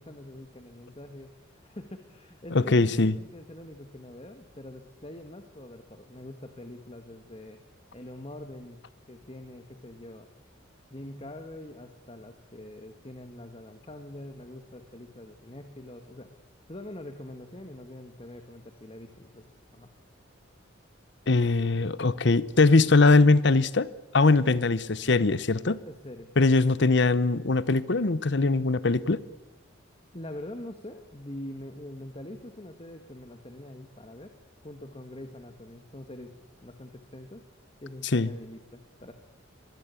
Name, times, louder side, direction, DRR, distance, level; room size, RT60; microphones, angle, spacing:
voice 1, 0.0-7.6 7.9-8.8 9.1-10.3 10.9-16.3 16.7-19.9 25.8-26.8 30.1-34.3 34.6-36.3 36.6-37.4 37.8-39.1, left 1 dB, 30° left, 1.6 m, -44 dB
voice 2, 2.5-3.1 21.3-25.8 26.4-29.2 38.1-38.3, left 3 dB, 60° left, 0.8 m, -21 dB
25.0 x 22.0 x 8.4 m
head